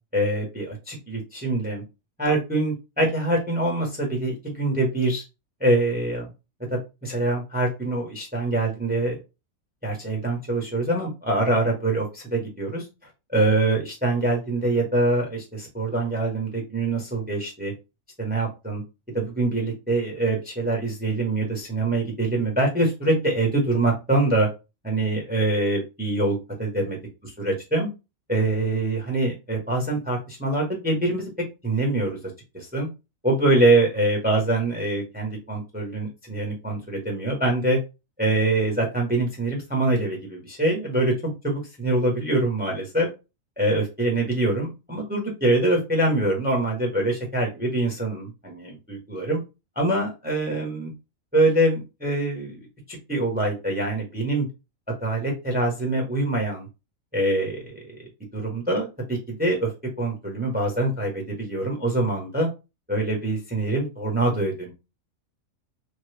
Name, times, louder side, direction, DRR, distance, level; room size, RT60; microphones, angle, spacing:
voice 1, 0.1-1.8 2.2-5.2 5.6-6.3 6.7-9.2 9.8-12.9 13.3-17.7 18.2-18.8 19.1-24.5 24.8-27.0 27.4-27.9 28.3-31.3 31.6-32.2 32.5-32.9 33.2-37.8 38.2-43.1 43.6-49.4 49.8-50.9 51.3-54.5 54.9-56.7 57.1-59.7 60.0-62.5 62.9-64.7, right 2 dB, 10° right, 1 dB, 0.7 m, -24 dB
3.0 x 2.2 x 3.2 m, 0.27 s
omnidirectional pair, 1.5 m